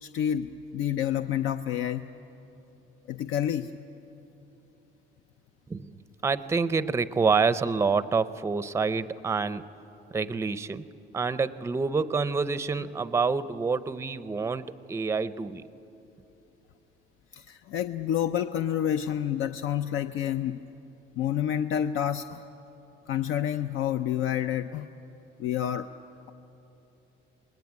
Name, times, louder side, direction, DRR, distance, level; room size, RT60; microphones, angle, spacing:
voice 1, 0.0-2.1 3.1-3.7 17.3-20.6 21.2-22.4 23.1-24.9 25.4-25.9, left 10 dB, 80° left, 9 dB, 0.7 m, -28 dB
voice 2, 5.7-9.6 10.1-10.8 11.1-15.6, right 4 dB, 15° right, 14 dB, 0.5 m, -27 dB
28.5 x 20.5 x 9.5 m, 3.0 s
cardioid pair, 165°, 21 cm